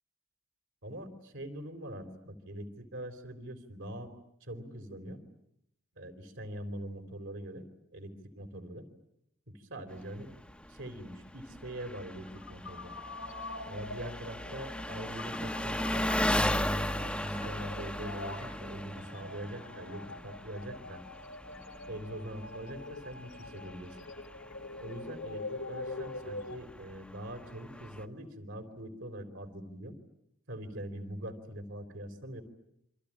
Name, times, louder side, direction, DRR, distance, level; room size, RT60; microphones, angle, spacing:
voice 1, 0.8-4.1 4.4-5.2 6.0-8.9 9.5-10.3 10.7-12.9 13.7-16.1 17.0-21.0 21.9-24.1 24.8-30.0 30.5-32.4, right 1 dB, 70° right, 6 dB, 4.0 m, -43 dB
Engine, 9.9-28.0, left 1 dB, 5° left, 1.2 m, -37 dB
sound 1, 12.1-26.6, left 3 dB, 70° left, 2.6 m, -45 dB
28.0 x 24.5 x 8.7 m, 0.77 s
head